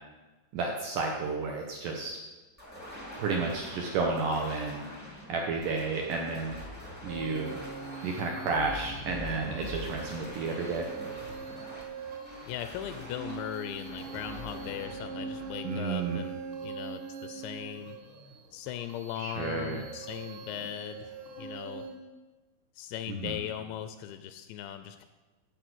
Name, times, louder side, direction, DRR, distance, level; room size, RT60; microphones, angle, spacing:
voice 1, 0.5-2.2 3.2-4.9 5.3-6.6 7.0-7.6 8.0-10.9 15.6-16.2 19.2-19.8 23.1-23.4, right 4 dB, 80° right, 1 dB, 1.8 m, -31 dB
sound 1, 2.6-16.4, left 1 dB, 20° left, 0.4 m, -45 dB
sound 2, 7.1-21.9, right 5 dB, 60° right, 2.4 m, -43 dB
voice 2, 12.4-18.0 18.5-21.9 22.8-25.1, left 11 dB, 80° left, 9 dB, 2.7 m, -39 dB
14.0 x 4.9 x 7.9 m, 1.2 s
omnidirectional pair, 5.4 m